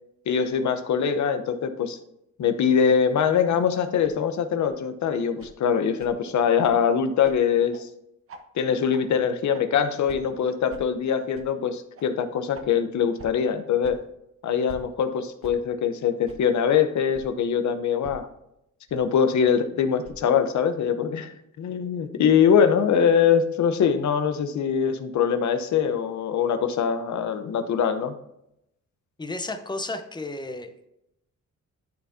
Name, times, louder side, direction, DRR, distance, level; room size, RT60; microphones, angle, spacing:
voice 1, 0.3-2.0 2.4-7.9 8.6-14.0 14.4-18.3 18.9-28.1, left 7 dB, 65° left, 8 dB, 0.8 m, -23 dB
sound 1, 4.0-4.1 4.6-4.7 5.4-5.5 6.0-6.1 6.6-6.7 7.2-7.3 7.7-7.8 8.3-8.4 8.9-9.0 9.5-9.6 10.1-10.2 10.7-10.8 11.3-11.5 11.9-12.1 12.5-12.6 13.2-13.3 13.8-14.0 14.7-14.8 15.4-15.5 16.3-16.4 17.1-17.3 18.0-18.2 18.9-19.0 20.0-20.2, right 3 dB, 45° right, 0.9 m, -44 dB
voice 2, 29.2-30.9, left 2 dB, 15° left, 7 dB, 0.8 m, -33 dB
12.0 x 4.2 x 2.7 m, 0.81 s
cardioid pair, 100°, 31 cm